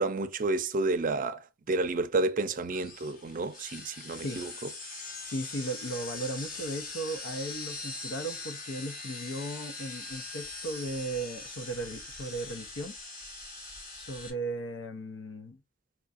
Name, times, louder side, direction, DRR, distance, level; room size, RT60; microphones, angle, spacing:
voice 1, 0.0-4.5, right 3 dB, 45° right, 0.5 m, -30 dB
sound 1, 2.7-14.3, left 3 dB, 50° left, 1.1 m, -42 dB
voice 2, 5.2-13.0 14.0-15.6, right 1 dB, 75° left, 0.7 m, -36 dB
4.4 x 2.5 x 2.5 m
head